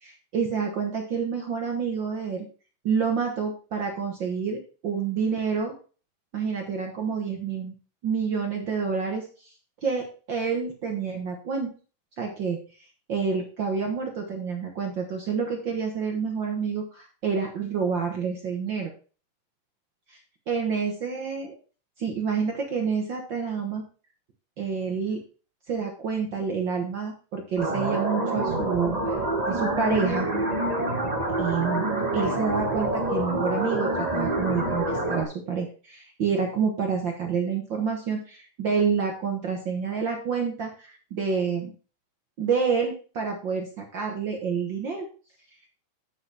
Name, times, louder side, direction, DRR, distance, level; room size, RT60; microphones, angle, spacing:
voice 1, 0.0-2.5 2.8-4.6 4.8-5.7 6.3-7.7 8.0-9.5 9.8-11.7 12.2-12.6 13.1-18.9 20.1-20.2 20.5-21.5 22.0-23.8 24.6-25.2 25.7-29.2 29.5-30.3 31.4-41.7 42.4-45.1, right 6 dB, 60° right, 2 dB, 1.2 m, -28 dB
sound 1, 27.6-35.2, right 1 dB, 25° right, 0.8 m, -27 dB
8.4 x 8.0 x 3.4 m, 0.37 s
omnidirectional pair, 3.9 m